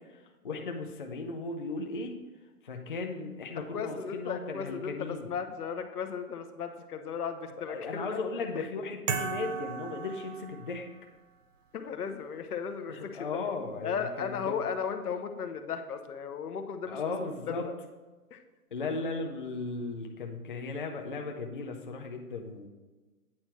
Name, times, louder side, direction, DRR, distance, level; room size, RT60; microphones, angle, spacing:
voice 1, 0.1-2.1 2.6-5.3 7.7-10.9 12.9-14.7 16.9-17.7 18.7-22.7, left 3 dB, 35° left, 2 dB, 0.5 m, -36 dB
voice 2, 3.6-8.2 8.5-8.7 11.7-13.3 13.8-17.0 17.5-17.7 18.3-18.4, left 6 dB, 85° left, 7 dB, 0.9 m, -36 dB
sound 1, 9.1-11.0, right 6 dB, 55° right, 0.7 m, -36 dB
8.8 x 4.4 x 4.4 m, 1.2 s
hypercardioid pair, 170°, 44 cm